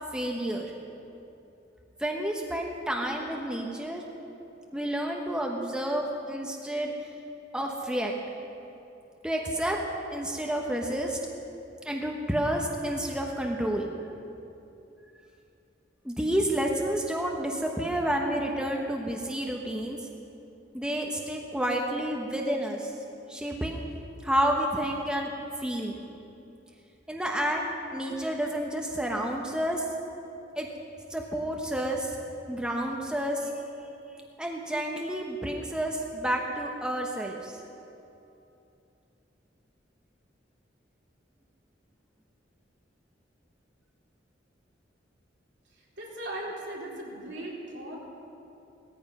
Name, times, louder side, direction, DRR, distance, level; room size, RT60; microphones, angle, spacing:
voice 1, 0.1-0.7 2.0-4.0 4.7-7.1 7.5-8.1 9.2-9.8 10.1-11.2 11.8-13.9 16.0-20.0 20.7-22.9 23.3-23.8 24.2-25.3 25.6-26.0 27.1-29.9 30.6-30.7 31.1-32.2 32.5-33.5 34.4-37.6, right 1 dB, 5° right, 0 dB, 1.0 m, -30 dB
voice 2, 46.0-48.0, right 1 dB, 65° right, -4 dB, 3.6 m, -38 dB
18.0 x 14.0 x 5.5 m, 2.8 s
head